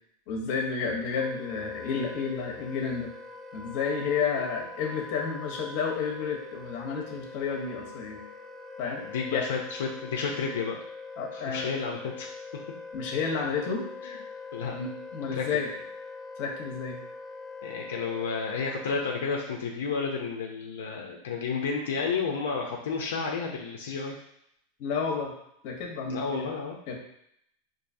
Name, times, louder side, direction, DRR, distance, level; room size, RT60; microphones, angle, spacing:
voice 1, 0.3-3.1 3.5-8.2 8.8-9.0 9.3-9.4 11.2-11.7 12.9-13.8 14.7-15.7 16.4-17.0 24.8-25.3 25.6-26.5 26.9-27.0, left 5 dB, 55° left, 1 dB, 0.9 m, -31 dB
Wind instrument woodwind instrument, 1.2-19.4, left 4 dB, 5° left, 0.5 m, -43 dB
voice 2, 9.0-10.8 11.3-12.3 14.0-14.2 14.5-14.7 15.3-15.4 17.6-24.2 26.1-26.7, left 5 dB, 90° left, 0 dB, 0.5 m, -31 dB
4.5 x 2.6 x 2.7 m, 0.74 s
supercardioid pair, 140°, 0 cm